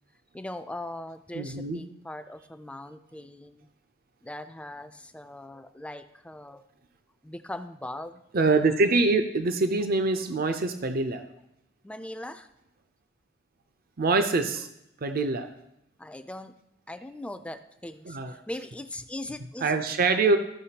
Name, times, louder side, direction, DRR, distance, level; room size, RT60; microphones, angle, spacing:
voice 1, 0.3-3.7 4.2-6.7 7.2-8.2 11.8-12.5 16.0-16.5 16.9-18.2 18.5-19.9, left 1 dB, 5° left, 9 dB, 0.4 m, -40 dB
voice 2, 1.3-1.8 8.3-11.2 14.0-14.7 15.0-15.5 18.1-18.3 19.6-20.4, right 3 dB, 50° right, 8 dB, 0.6 m, -24 dB
14.0 x 5.7 x 2.9 m, 0.82 s
head